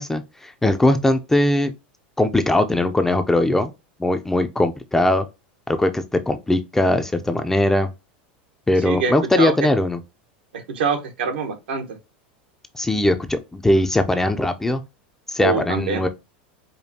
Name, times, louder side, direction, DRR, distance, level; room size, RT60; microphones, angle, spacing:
voice 1, 0.0-1.7 2.2-3.7 4.0-5.3 5.7-7.9 8.7-10.0 12.7-14.8 15.3-16.1, left 1 dB, 5° left, 0.4 m, -20 dB
voice 2, 8.8-9.5 10.5-11.9 15.4-16.0, right 5 dB, 85° right, 1.1 m, -24 dB
5.1 x 2.2 x 2.7 m
supercardioid pair, 125°, 5 cm